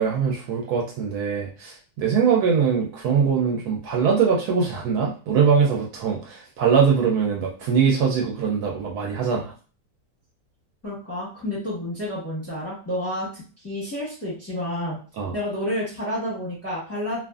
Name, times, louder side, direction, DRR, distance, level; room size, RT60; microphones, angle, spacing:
voice 1, 0.0-9.5 15.2-15.3, right 6 dB, 70° right, -1 dB, 1.1 m, -22 dB
voice 2, 10.8-15.0 15.3-17.2, left 1 dB, 10° left, -5 dB, 0.8 m, -30 dB
2.7 x 2.4 x 2.3 m, 0.37 s
omnidirectional pair, 1.8 m